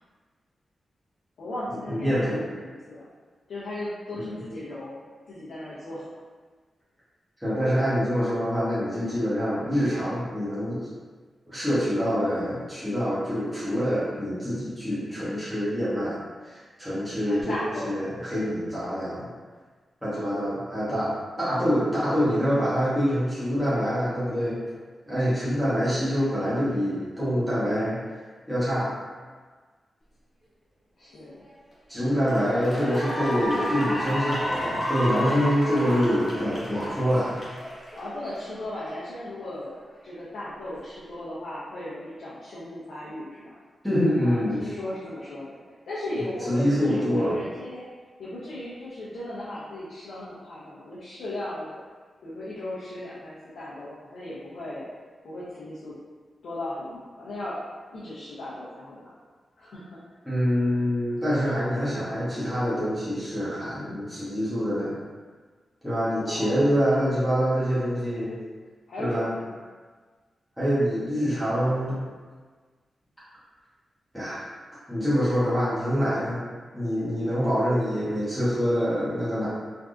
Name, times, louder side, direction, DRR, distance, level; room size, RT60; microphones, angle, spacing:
voice 1, 1.4-3.1 3.5-5.0 5.3-6.1 17.2-17.9 31.0-31.5 37.9-39.7 40.0-43.6 44.2-45.6 45.9-47.9 48.2-51.8 52.2-54.9 55.2-56.0 56.4-57.6 57.9-59.1 59.6-60.0 66.1-66.7 68.9-69.6, left 1 dB, 85° left, -9 dB, 0.6 m, -37 dB
voice 2, 1.9-2.4 4.1-4.4 7.4-10.9 11.4-16.2 16.4-17.6 17.8-19.3 20.0-24.6 25.1-28.0 28.5-29.0 31.9-37.4 43.8-44.7 46.5-47.4 60.2-64.9 65.8-68.4 69.0-69.3 70.6-72.0 74.1-74.4 74.9-76.4 76.7-79.5, equal, ahead, -12 dB, 1.0 m, -25 dB
Cheering / Applause, 31.4-31.7 32.2-38.7, equal, 30° left, 1.0 m, -31 dB
3.4 x 2.6 x 2.4 m, 1.4 s
wide cardioid pair, 125°, 0 cm